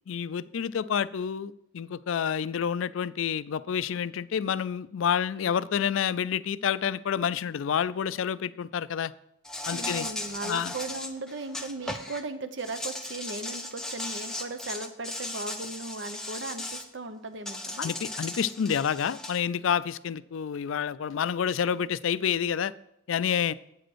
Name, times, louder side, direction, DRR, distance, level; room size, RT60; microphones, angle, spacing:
voice 1, 0.1-9.1 9.7-10.1 10.4-10.7 17.8-22.7 23.1-23.5, left 8 dB, 80° left, 17 dB, 0.4 m, -28 dB
Insect, 9.4-12.2 12.6-16.8 17.4-19.4, left 1 dB, 5° left, 0.6 m, -37 dB
voice 2, 9.7-17.9, right 2 dB, 60° right, 10 dB, 0.8 m, -37 dB
9.0 x 5.1 x 6.2 m, 0.79 s
head